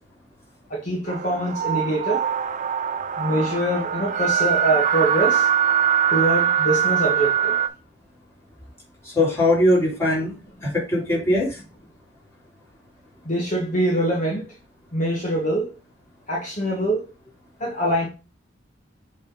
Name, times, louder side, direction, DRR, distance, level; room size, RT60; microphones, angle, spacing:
voice 1, 0.7-2.2 3.2-5.5 6.1-7.6 13.2-14.5 14.9-15.7 16.3-17.1 17.6-18.1, right 1 dB, 45° left, 1.6 m, -24 dB
sound 1, 1.1-7.7, right 9 dB, 45° right, 0.6 m, -22 dB
voice 2, 9.1-10.3 10.6-11.6, left 1 dB, 15° left, 3.4 m, -20 dB
7.4 x 3.7 x 3.9 m
head